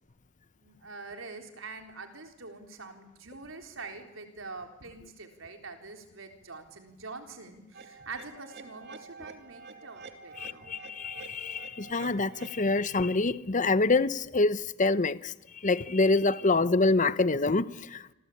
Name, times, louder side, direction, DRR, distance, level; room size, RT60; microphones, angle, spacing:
voice 1, 0.6-10.7, right 3 dB, 85° right, 3.9 m, -45 dB
sound 1, 7.7-12.7, right 4 dB, 60° right, 2.7 m, -48 dB
voice 2, 10.4-15.3 15.6-18.1, left 3 dB, 40° left, 0.9 m, -26 dB
27.5 x 23.5 x 8.6 m
head